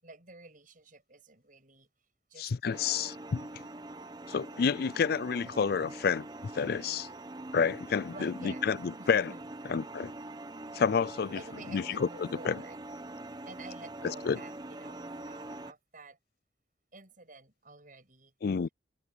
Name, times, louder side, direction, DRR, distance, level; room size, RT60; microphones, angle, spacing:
voice 1, 0.0-1.9 2.3-2.5 8.1-8.6 9.0-9.4 11.3-12.8 13.5-16.2 16.9-18.3, right 3 dB, 45° right, 7.8 m, -50 dB
voice 2, 2.4-3.5 4.3-6.3 6.5-7.1 7.5-9.3 9.7-10.1 10.7-11.4 11.7-12.6 14.0-14.4 18.4-18.7, left 6 dB, 55° left, 0.4 m, -29 dB
sound 1, 2.7-15.7, right 2 dB, 20° right, 0.8 m, -44 dB
head